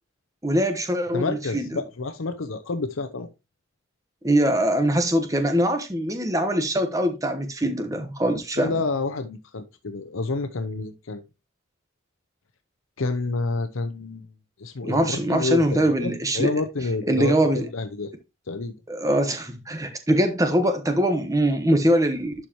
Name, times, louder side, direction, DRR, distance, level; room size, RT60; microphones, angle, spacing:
voice 1, 0.4-1.7 4.2-8.7 14.8-16.5 17.1-17.7 18.9-22.3, right 1 dB, 15° right, 1.0 m, -22 dB
voice 2, 1.1-3.3 8.6-11.2 13.0-14.3 14.6-18.1 18.5-18.7, left 3 dB, 75° left, 0.7 m, -29 dB
11.5 x 4.7 x 2.9 m
head